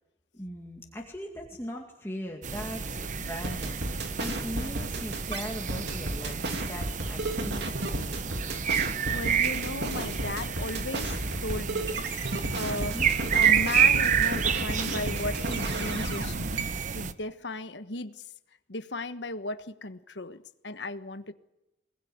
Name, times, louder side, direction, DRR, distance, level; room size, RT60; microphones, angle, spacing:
voice 1, 0.3-6.4 6.7-8.4 12.7-13.1, equal, 15° left, 0 dB, 2.2 m, -39 dB
sound 1, 2.4-17.1, right 7 dB, 40° right, 0.9 m, -29 dB
sound 2, 3.4-17.0, right 2 dB, 65° right, 2.7 m, -33 dB
voice 2, 8.8-13.0 13.3-18.3 18.7-21.3, left 2 dB, 70° left, 10 dB, 1.3 m, -36 dB
22.0 x 20.0 x 9.6 m, 0.92 s
head